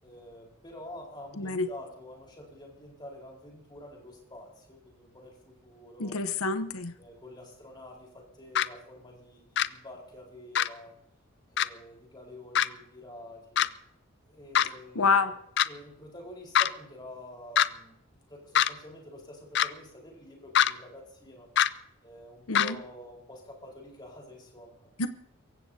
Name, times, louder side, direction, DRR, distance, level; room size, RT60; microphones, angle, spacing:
voice 1, 0.0-6.2 7.0-10.9 11.5-13.7 14.3-15.2 15.7-21.5 22.0-24.9, left 1 dB, 20° left, -1 dB, 4.2 m, -48 dB
voice 2, 1.4-1.7 6.0-6.9 14.9-15.3 22.5-22.8 25.0-25.1, left 4 dB, 80° left, 9 dB, 0.9 m, -27 dB
sound 1, 8.6-8.7 9.6-9.7 10.6-10.7 11.6-11.7 12.5-12.7 13.6-13.7 14.5-14.7 15.6-15.7 16.5-16.7 17.6-17.7 18.5-18.7 19.5-19.7 20.5-20.7 21.6-21.7 22.5-22.7, left 10 dB, 50° left, 0.4 m, -22 dB
24.0 x 15.0 x 2.8 m, 0.73 s
head